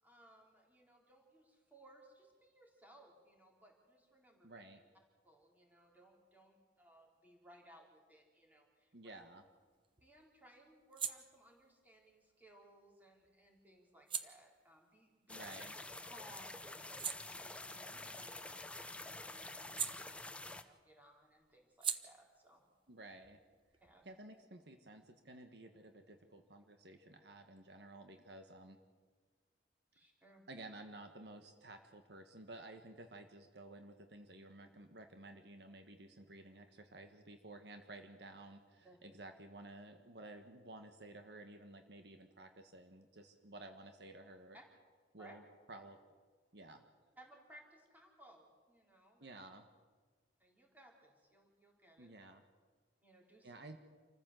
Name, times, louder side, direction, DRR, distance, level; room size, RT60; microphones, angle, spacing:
voice 1, 0.0-4.5 5.2-9.1 10.0-15.5 16.0-22.6 23.8-24.1 29.9-30.5 38.8-39.0 44.5-44.6 45.2-45.4 47.2-49.3 50.4-52.1 53.0-53.6, equal, 10° right, 0 dB, 4.1 m, -63 dB
voice 2, 4.4-4.8 8.9-9.4 15.3-15.8 22.9-23.4 24.0-28.8 30.5-44.6 45.1-45.4 45.7-46.0 46.5-46.8 49.2-49.7 52.0-52.4 53.4-53.8, right 2 dB, 65° right, 6 dB, 1.5 m, -54 dB
sound 1, 9.2-16.1 16.5-20.7 21.0-24.4, right 7 dB, 30° right, 1.0 m, -47 dB
sound 2, 15.3-20.6, left 2 dB, 5° left, 0.8 m, -48 dB
27.5 x 14.5 x 7.7 m, 1.5 s
head